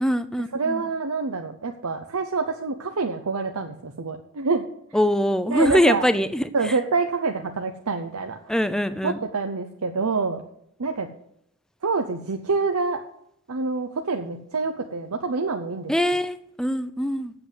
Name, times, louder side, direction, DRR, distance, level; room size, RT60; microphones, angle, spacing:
voice 1, 0.0-0.8 4.9-6.7 8.5-9.2 15.9-17.3, equal, 5° left, 12 dB, 0.4 m, -23 dB
voice 2, 0.5-4.7 5.5-6.0 6.5-8.5 9.0-10.4 10.8-11.1 11.8-13.0 13.5-15.9, right 4 dB, 85° right, 5 dB, 0.8 m, -26 dB
7.9 x 7.9 x 8.1 m, 0.76 s
head